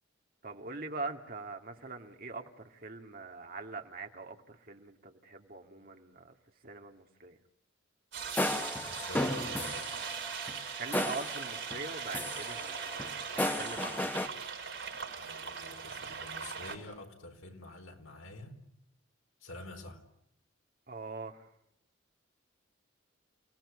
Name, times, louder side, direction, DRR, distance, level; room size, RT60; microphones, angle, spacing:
voice 1, 0.4-6.3 6.6-7.4 10.8-14.3 20.9-21.4, right 3 dB, 45° right, 4 dB, 2.3 m, -43 dB
sound 1, 8.1-16.8, right 6 dB, 65° right, 6.3 m, -40 dB
sound 2, 8.2-11.9 12.1-14.3, left 1 dB, 10° left, 1.1 m, -35 dB
voice 2, 8.8-9.9 13.7-14.4 15.1-18.6 19.4-20.0, left 2 dB, 80° left, 4 dB, 4.4 m, -47 dB
29.5 x 18.0 x 9.9 m, 0.79 s
head